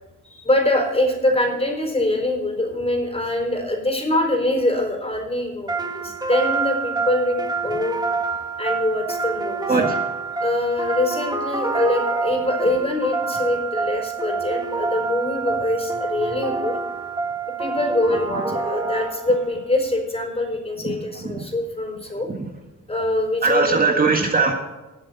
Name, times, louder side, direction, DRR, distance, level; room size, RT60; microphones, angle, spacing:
voice 1, 0.2-8.0 8.6-9.8 10.4-16.8 17.6-22.3 22.9-23.8, left 1 dB, 20° left, 2 dB, 4.2 m, -24 dB
sound 1, 5.7-19.5, right 4 dB, 15° right, 1.5 m, -27 dB
voice 2, 9.7-10.0 20.8-20.9 21.2-21.3 23.4-24.5, right 4 dB, 30° right, 2 dB, 1.7 m, -19 dB
19.5 x 7.7 x 4.2 m, 1.1 s
cardioid pair, 115°, 30 cm